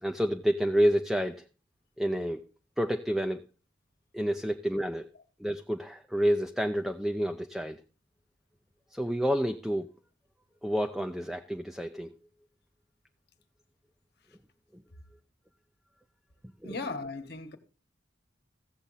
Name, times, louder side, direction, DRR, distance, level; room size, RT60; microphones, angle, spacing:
voice 1, 0.0-1.4 2.0-2.4 2.8-3.4 4.1-5.1 5.4-7.8 8.9-9.9 10.6-12.1 14.7-14.8 16.6-16.8, equal, ahead, 0.4 m, -29 dB
voice 2, 16.6-17.6, left 3 dB, 60° left, 1.3 m, -37 dB
15.5 x 7.2 x 4.0 m
head